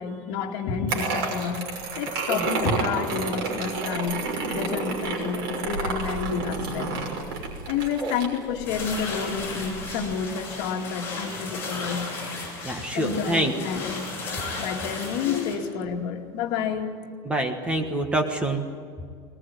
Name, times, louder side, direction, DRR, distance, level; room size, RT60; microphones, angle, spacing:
voice 1, 0.0-1.7 2.0-7.0 7.7-12.1 12.9-14.0 14.6-16.9, left 6 dB, 50° left, 3 dB, 2.3 m, -29 dB
sound 1, 0.9-10.1, right 4 dB, 75° right, 5.9 m, -30 dB
sound 2, 8.7-15.6, left 3 dB, 20° left, 7.2 m, -35 dB
voice 2, 12.6-13.5 17.2-18.7, right 1 dB, 10° right, 5 dB, 1.3 m, -26 dB
21.0 x 20.5 x 9.4 m, 2.1 s
cardioid pair, 175°, 12 cm